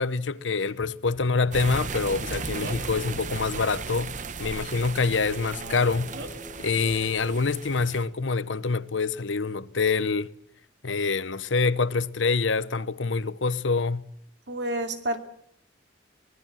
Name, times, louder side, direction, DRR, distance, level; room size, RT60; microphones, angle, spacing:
voice 1, 0.0-4.1 4.4-6.1 6.6-10.3 10.8-14.0, left 4 dB, 85° left, 0.9 m, -26 dB
sound 1, 1.5-8.0, right 4 dB, 40° right, 1.0 m, -36 dB
Male speech man speaking, 2.1-3.0 5.5-6.3, right 2 dB, 85° right, 3.4 m, -41 dB
sound 2, 4.4-8.3, equal, 10° left, 7.1 m, -48 dB
voice 2, 14.5-15.2, right 1 dB, 65° right, 2.6 m, -29 dB
24.0 x 19.5 x 7.5 m
head